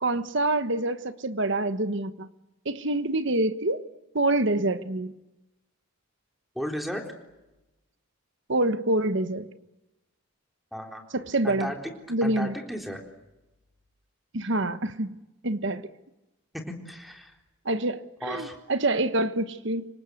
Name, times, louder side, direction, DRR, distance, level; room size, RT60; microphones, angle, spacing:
voice 1, 0.0-2.3 2.6-3.9 4.1-5.2 8.5-9.5 11.1-11.7 12.1-12.6 14.3-15.2 15.4-15.9 17.6-19.9, right 2 dB, 55° right, 1.3 m, -26 dB
voice 2, 6.6-7.1 10.7-11.1 11.4-11.9 12.2-13.0 16.5-17.3 18.2-18.6, equal, ahead, 3.7 m, -34 dB
27.5 x 25.0 x 8.1 m
head